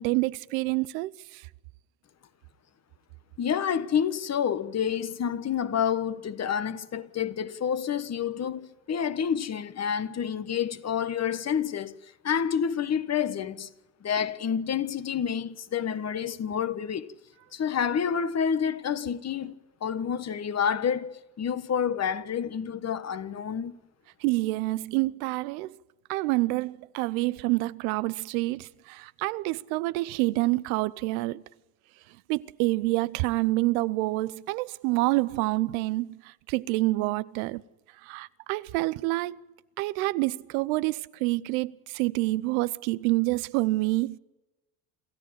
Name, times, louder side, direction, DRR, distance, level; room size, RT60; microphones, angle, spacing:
voice 1, 0.0-1.4 24.2-25.8 26.1-31.4 32.3-37.6 38.0-39.4 39.8-44.2, right 20 dB, 80° right, 0.8 m, -27 dB
voice 2, 3.4-12.0 12.2-13.7 14.0-17.2 17.5-19.5 19.8-23.8, left 8 dB, 40° left, 1.3 m, -28 dB
27.0 x 14.0 x 8.9 m
hypercardioid pair, 75°, 42 cm